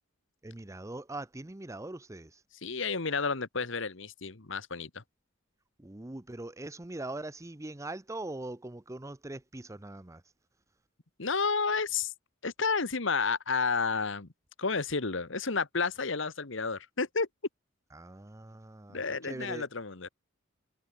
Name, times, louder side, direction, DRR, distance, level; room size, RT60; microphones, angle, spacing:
voice 1, 0.4-2.4 5.8-10.2 17.9-19.7, right 2 dB, 15° right, 0.7 m, -41 dB
voice 2, 2.6-5.0 11.2-12.1 12.4-14.3 14.6-17.3 18.9-20.1, left 4 dB, 65° left, 1.4 m, -31 dB
head